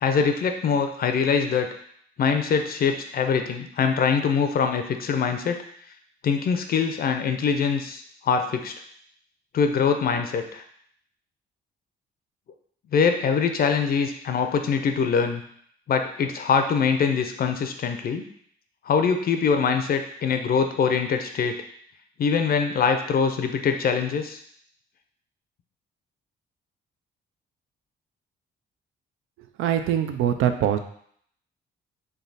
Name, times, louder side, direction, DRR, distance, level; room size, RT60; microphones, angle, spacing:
voice 1, 0.0-1.7 2.2-5.6 6.2-8.7 9.5-10.6 12.9-15.4 15.9-18.2 18.8-21.6 22.2-24.4, left 6 dB, 50° left, 6 dB, 0.5 m, -23 dB
voice 2, 29.6-30.8, right 10 dB, 85° right, 8 dB, 0.4 m, -23 dB
3.4 x 2.7 x 3.9 m, 0.64 s
cardioid pair, 90°, 20 cm